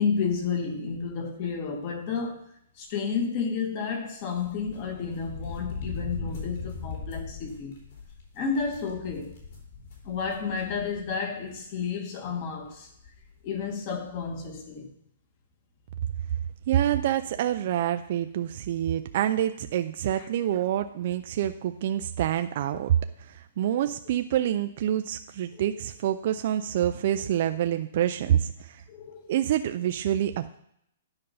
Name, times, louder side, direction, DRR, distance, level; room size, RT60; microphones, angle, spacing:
voice 1, 0.0-2.4 2.8-7.8 8.3-9.3 10.0-12.9 13.4-14.9 20.2-20.3 22.7-22.8 25.5-25.6 28.9-29.3, left 5 dB, 30° left, 1.3 m, -31 dB
sound 1, 4.4-11.1 11.5-11.6 12.6-12.7 13.0-13.3, left 4 dB, 50° left, 3.3 m, -39 dB
voice 2, 16.7-28.8 29.3-30.6, right 11 dB, 40° right, 0.4 m, -27 dB
9.9 x 5.2 x 5.5 m
hypercardioid pair, 175°, 0 cm